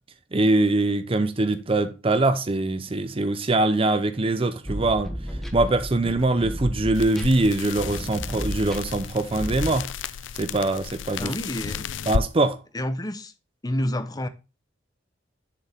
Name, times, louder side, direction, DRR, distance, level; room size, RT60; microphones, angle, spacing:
voice 1, 0.3-5.1 5.5-9.9 10.4-11.3 12.1-12.6, right 2 dB, 30° right, 0.7 m, -23 dB
sound 1, 4.6-9.8, equal, ahead, 1.1 m, -32 dB
sound 2, 6.9-12.3, left 6 dB, 85° left, 0.5 m, -33 dB
voice 2, 11.2-11.9 12.7-13.3 13.6-14.3, left 1 dB, 20° left, 0.8 m, -28 dB
7.3 x 6.8 x 3.4 m
head